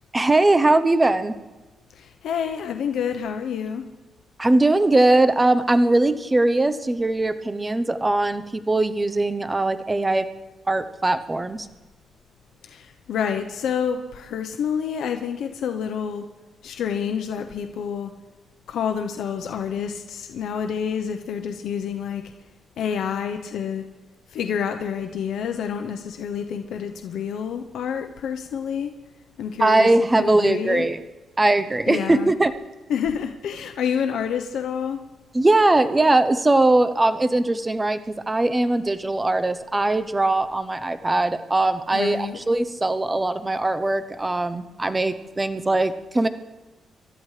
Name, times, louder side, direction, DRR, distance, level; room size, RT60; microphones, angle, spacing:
voice 1, 0.1-1.3 4.4-10.3 10.7-11.7 29.6-31.0 31.4-32.5 35.3-46.3, right 2 dB, 15° right, 11 dB, 0.7 m, -20 dB
voice 2, 2.0-3.8 12.6-16.2 16.6-18.1 18.7-22.2 22.8-23.8 24.3-28.9 29.4-30.9 31.9-32.3 32.9-35.0 41.9-42.4, left 7 dB, 80° left, 5 dB, 0.8 m, -28 dB
27.5 x 13.0 x 3.3 m, 1.2 s
cardioid pair, 125°, 0 cm